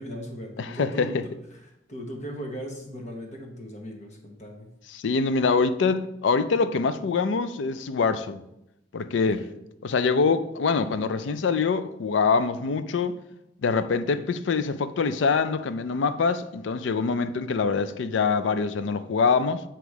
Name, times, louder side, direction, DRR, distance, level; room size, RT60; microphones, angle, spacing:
voice 1, 0.0-4.7 9.1-9.5, equal, 40° left, 1.1 m, -38 dB
voice 2, 0.6-1.2 4.9-8.4 8.9-9.4 9.8-13.2 13.6-19.6, left 4 dB, 75° left, 0.4 m, -24 dB
8.0 x 3.0 x 4.6 m
head